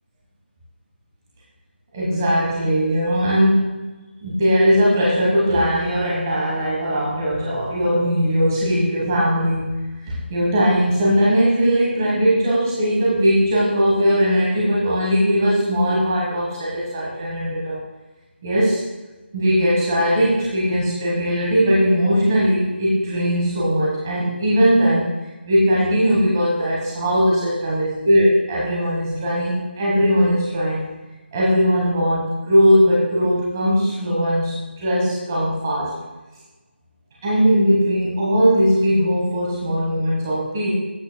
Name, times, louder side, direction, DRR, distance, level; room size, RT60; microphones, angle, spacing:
voice 1, 1.9-3.9 4.2-17.8 18.4-18.8 19.3-25.1 25.4-30.9 31.3-35.9 37.2-40.7, equal, 15° right, -6 dB, 1.2 m, -19 dB
13.5 x 8.3 x 2.2 m, 1.2 s
figure-of-eight pair, 180°, 6 cm